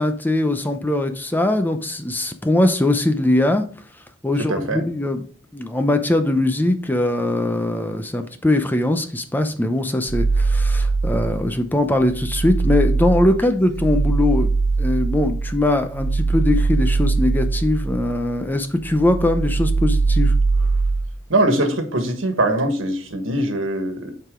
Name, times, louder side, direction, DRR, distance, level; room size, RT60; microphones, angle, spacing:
voice 1, 0.0-3.6 4.2-5.2 5.5-14.5 14.8-20.3, left 1 dB, 10° left, 7 dB, 0.6 m, -21 dB
voice 2, 4.5-4.8 21.3-24.1, right 1 dB, 90° right, 6 dB, 1.5 m, -21 dB
sound 1, 10.1-11.5 11.9-18.4 18.8-21.0, right 3 dB, 85° left, 2.7 m, -21 dB
8.0 x 4.8 x 3.7 m, 0.42 s
head